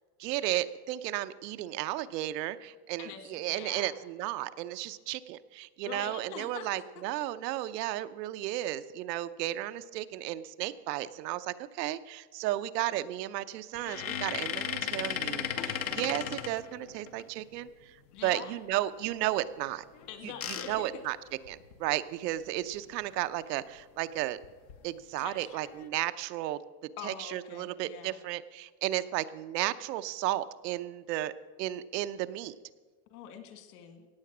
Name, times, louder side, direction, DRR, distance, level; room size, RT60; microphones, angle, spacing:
voice 1, 0.2-18.0 18.2-19.8 20.5-21.2 21.5-24.4 24.8-26.6 27.0-31.3 31.6-32.5, right 14 dB, 80° right, 12 dB, 0.8 m, -34 dB
voice 2, 3.5-4.0 5.8-6.8 18.1-18.6 20.1-20.9 25.2-25.7 27.0-28.2 33.1-34.1, left 8 dB, 70° left, 7 dB, 2.1 m, -44 dB
sound 1, 13.7-17.2 19.9-21.8 22.4-22.5 22.7-22.9 24.4-24.8 25.4-25.9, left 9 dB, 30° left, 0.3 m, -36 dB
16.5 x 8.6 x 6.0 m, 1.4 s
supercardioid pair, 180°, 48 cm